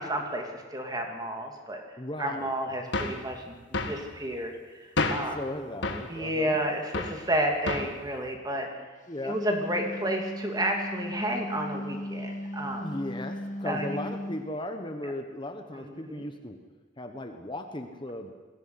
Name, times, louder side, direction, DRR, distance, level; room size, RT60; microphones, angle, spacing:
voice 1, 0.0-1.8 2.2-4.5 5.1-5.4 6.1-8.7 9.2-12.9 13.6-14.0 15.7-16.2, right 1 dB, 20° right, 3 dB, 2.7 m, -31 dB
voice 2, 2.0-3.0 5.0-6.6 9.1-9.4 12.6-16.6 17.0-18.3, left 1 dB, 25° left, 5 dB, 1.3 m, -37 dB
sound 1, 2.9-3.2 3.7-4.0 5.0-5.3 5.8-6.1 6.9-7.2 7.7-8.0, left 3 dB, 75° left, 2.0 m, -29 dB
Wind instrument woodwind instrument, 9.1-14.5, equal, 45° left, 2.1 m, -37 dB
21.5 x 15.5 x 9.6 m, 1.3 s
head